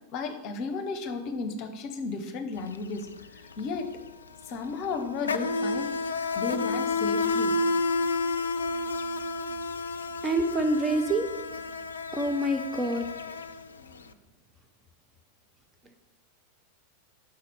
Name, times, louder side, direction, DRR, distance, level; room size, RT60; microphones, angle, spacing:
voice 1, 0.1-3.1 3.3-4.0 4.5-7.6, left 4 dB, 40° left, 6 dB, 0.9 m, -34 dB
Insect, 2.6-2.8 3.0-14.0, left 3 dB, 70° left, 0.3 m, -30 dB
voice 2, 10.2-11.3 12.1-13.0, right 1 dB, 15° right, 5 dB, 0.6 m, -26 dB
5.8 x 4.2 x 6.3 m, 0.99 s
figure-of-eight pair, 90°, 0 cm